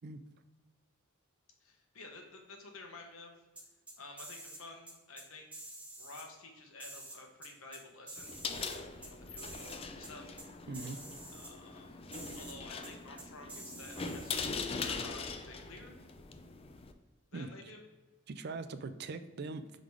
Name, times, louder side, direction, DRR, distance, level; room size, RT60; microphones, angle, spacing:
voice 1, 1.6-3.4 4.0-5.5 6.0-10.4 11.3-14.5 14.8-16.0 17.3-17.8, left 3 dB, 85° left, 2 dB, 1.2 m, -52 dB
sound 1, 3.6-4.6 4.9-5.2 5.5-6.2 6.8-7.8 8.1-9.1 9.4-9.8 10.0-10.1 10.4-10.5 10.7-11.5 12.1-12.5 12.8-12.9 13.2-14.5, right 1 dB, 5° right, 1.6 m, -48 dB
sound 2, 8.2-16.9, left 4 dB, 30° left, 0.4 m, -42 dB
voice 2, 10.7-11.0 17.3-17.5 18.3-19.8, right 3 dB, 50° right, 11 dB, 0.4 m, -41 dB
5.2 x 3.9 x 4.7 m, 1.2 s
head